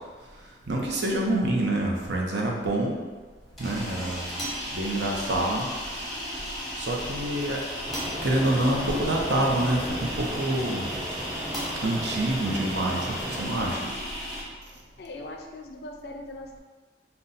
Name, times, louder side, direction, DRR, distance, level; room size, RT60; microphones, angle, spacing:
voice 1, 0.7-2.9 3.6-4.4 4.7-5.7 6.8-7.6 8.2-10.9 11.8-13.8, right 1 dB, 80° right, -1 dB, 0.7 m, -27 dB
sound 1, 3.4-14.4, equal, ahead, 0.8 m, -35 dB
sound 2, 7.9-13.5, equal, 20° right, 0.4 m, -36 dB
voice 2, 15.0-16.6, left 2 dB, 60° left, 3 dB, 0.4 m, -40 dB
3.9 x 2.2 x 4.0 m, 1.4 s
head